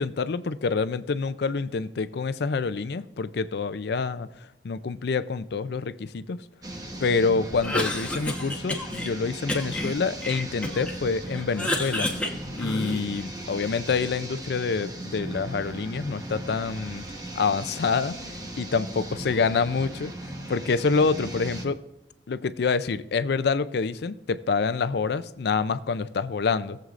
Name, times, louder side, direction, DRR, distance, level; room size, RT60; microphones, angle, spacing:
voice 1, 0.0-4.3 4.6-6.4 7.0-12.1 12.5-17.0 17.3-18.2 18.6-21.8 22.3-26.8, left 4 dB, 65° left, 0.5 m, -27 dB
sound 1, 6.6-21.6, right 1 dB, 20° right, 1.1 m, -38 dB
Cough, 7.5-9.1 9.5-11.0 11.3-13.2, left 1 dB, 5° left, 1.1 m, -30 dB
17.5 x 7.8 x 2.5 m
head